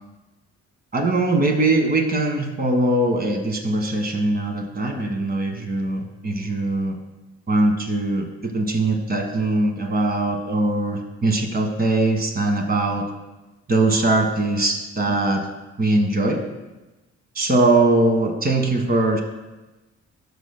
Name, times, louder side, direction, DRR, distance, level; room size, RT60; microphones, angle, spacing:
voice 1, 0.9-7.0 7.5-13.1 13.7-15.5 15.8-16.4 17.3-19.2, right 2 dB, 30° right, 3 dB, 1.5 m, -21 dB
14.0 x 6.5 x 2.2 m, 1.1 s
cardioid pair, 90°, 30 cm